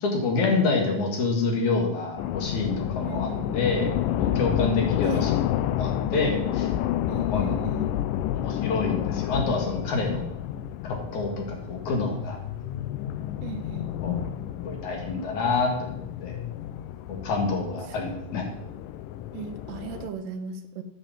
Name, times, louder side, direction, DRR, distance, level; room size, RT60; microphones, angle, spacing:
voice 1, 0.0-5.3 5.8-6.7 7.3-7.6 8.4-10.3 10.8-12.4 14.0-14.2 14.6-16.4 17.1-18.4, left 3 dB, 60° left, 1 dB, 3.0 m, -27 dB
sound 1, 2.2-20.1, left 11 dB, 80° left, 2.1 m, -30 dB
voice 2, 3.0-3.6 5.0-5.3 7.1-7.9 13.4-13.9 17.9-18.1 19.3-20.8, right 7 dB, 80° right, 7 dB, 2.4 m, -37 dB
9.0 x 7.0 x 7.3 m, 0.84 s
omnidirectional pair, 4.1 m